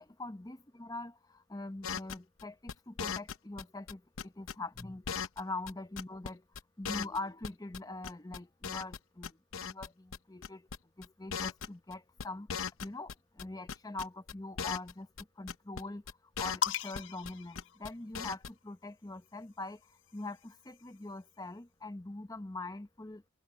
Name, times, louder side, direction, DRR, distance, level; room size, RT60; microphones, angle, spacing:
voice 1, 0.0-5.0 5.4-6.4 6.8-9.3 9.6-10.6 11.0-12.5 12.8-13.1 13.4-15.1 15.4-16.0 16.4-19.8 20.1-23.2, left 2 dB, 15° left, 0.7 m, -43 dB
sound 1, 1.8-5.4 5.7-5.8 6.0-6.3 6.5-6.6 6.8-9.0 9.2-9.9 10.1-10.2 10.4-10.8 11.0-11.1 11.3-11.9 12.2-13.4 13.7-14.9 15.2-15.3 15.5-15.8 16.1-17.3 17.6-17.9 18.1-18.5, left 6 dB, 75° left, 0.8 m, -38 dB
sound 2, 16.6-18.4 19.5-21.2, left 9 dB, 55° left, 0.4 m, -40 dB
head